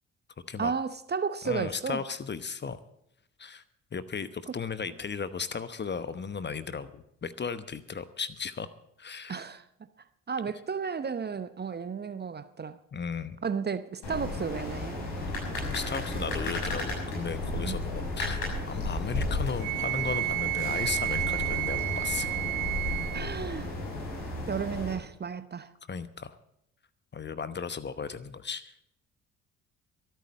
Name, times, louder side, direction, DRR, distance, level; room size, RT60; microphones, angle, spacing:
voice 1, 0.6-2.0 4.4-4.5 9.3-9.7 10.3-12.8 13.4-15.1 17.6-17.7 23.1-23.7 24.5-25.7, right 6 dB, 25° right, 0.9 m, -33 dB
voice 2, 1.4-2.8 3.4-3.6 3.9-8.7 9.0-9.5 12.9-13.4 15.6-22.4 25.9-26.4 27.1-28.7, left 5 dB, 25° left, 1.0 m, -35 dB
sound 1, 14.0-24.9, left 2 dB, 65° left, 6.5 m, -33 dB
Wind instrument woodwind instrument, 19.6-23.3, right 19 dB, 70° right, 1.0 m, -31 dB
24.0 x 9.2 x 4.3 m
figure-of-eight pair, 45°, 39 cm